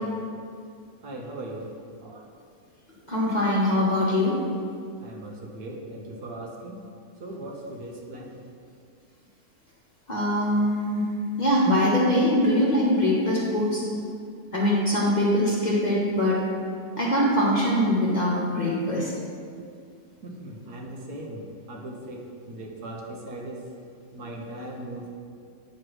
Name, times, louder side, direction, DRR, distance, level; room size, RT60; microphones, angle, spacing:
voice 1, 1.0-1.7 2.0-2.2 5.0-6.8 7.2-8.4 20.2-23.6 24.1-25.1, right 1 dB, 75° right, 0 dB, 1.4 m, -38 dB
voice 2, 3.1-4.3 10.1-11.1 11.4-13.8 14.5-16.4 17.0-19.1, left 1 dB, 30° left, -5 dB, 1.1 m, -22 dB
8.8 x 3.2 x 6.2 m, 2.3 s
omnidirectional pair, 1.7 m